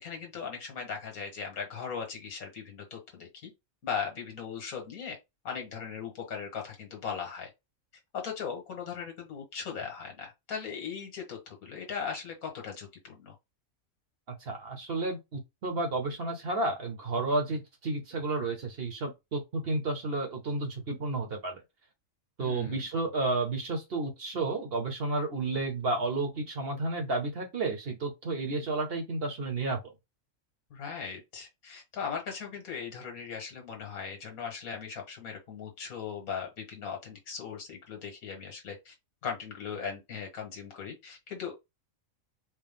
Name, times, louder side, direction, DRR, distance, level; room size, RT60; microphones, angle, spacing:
voice 1, 0.0-3.5 3.8-5.2 5.4-7.5 8.1-13.4 22.4-22.9 30.7-38.9 39.2-41.5, left 6 dB, 85° left, 1.8 m, -38 dB
voice 2, 14.3-21.6 22.4-29.8, right 2 dB, 50° right, 1.0 m, -31 dB
4.5 x 2.1 x 3.5 m
omnidirectional pair, 1.5 m